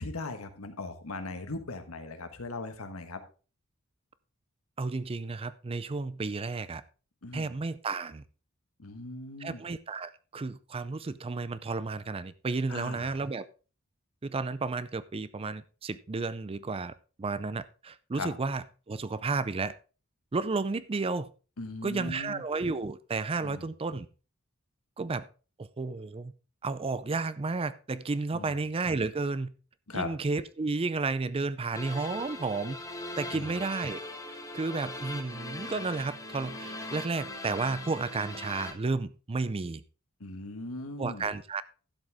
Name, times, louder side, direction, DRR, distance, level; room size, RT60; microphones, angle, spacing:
voice 1, 0.0-3.2 7.2-7.5 8.8-9.6 12.7-13.1 18.2-18.3 21.6-22.4 23.4-23.6 28.3-28.5 29.9-30.1 33.3-33.5 40.2-41.3, left 2 dB, 85° left, 1.4 m, -39 dB
voice 2, 4.8-6.8 7.3-8.2 9.4-13.5 14.2-19.7 20.3-21.3 21.8-24.1 25.0-25.3 25.6-26.3 26.6-29.5 29.9-34.0 34.3-39.8 41.0-41.6, right 3 dB, 25° right, 0.4 m, -32 dB
sound 1, 31.7-38.7, left 2 dB, 15° left, 1.4 m, -40 dB
12.0 x 7.7 x 3.5 m
head